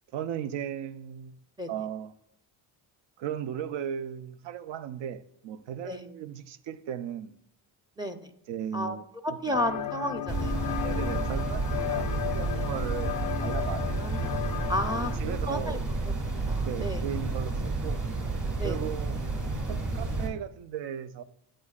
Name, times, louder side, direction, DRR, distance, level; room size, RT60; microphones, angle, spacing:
voice 1, 0.1-1.4 1.7-2.1 3.2-7.4 8.5-9.0 9.5-9.6 10.8-14.1 15.0-15.9 16.6-18.0 18.6-19.2 19.7-21.2, right 9 dB, 65° right, 0.6 m, -36 dB
voice 2, 8.0-8.3 8.7-9.0 9.2-10.8 14.0-14.4 14.7-15.8 16.1-16.2 16.5-17.0 18.6-18.8, equal, 10° right, 0.6 m, -32 dB
sound 1, 9.5-15.2, left 12 dB, 40° left, 0.4 m, -34 dB
sound 2, 10.3-20.3, right 3 dB, 40° right, 2.0 m, -31 dB
8.6 x 8.1 x 2.4 m
supercardioid pair, 80°, 48 cm